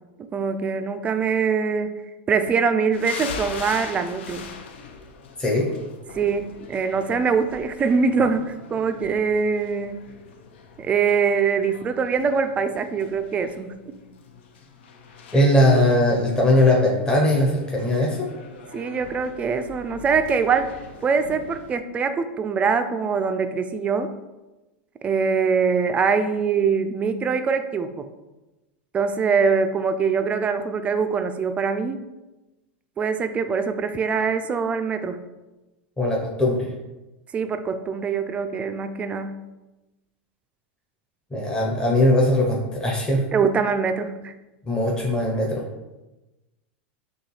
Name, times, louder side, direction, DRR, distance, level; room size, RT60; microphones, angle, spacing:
voice 1, 0.3-2.0 2.3-4.5 6.1-10.0 10.8-13.7 18.7-20.8 21.0-24.2 25.0-28.1 28.9-32.0 33.0-35.2 37.3-39.5 43.3-44.3, right 5 dB, 20° right, 9 dB, 0.3 m, -23 dB
sound 1, 2.9-21.8, left 5 dB, 80° left, 0.6 m, -42 dB
voice 2, 15.3-18.3 36.0-36.7 41.3-43.2 44.7-45.6, left 1 dB, 15° left, -3 dB, 0.8 m, -20 dB
6.5 x 2.3 x 3.2 m, 1.1 s
supercardioid pair, 125°, 6 cm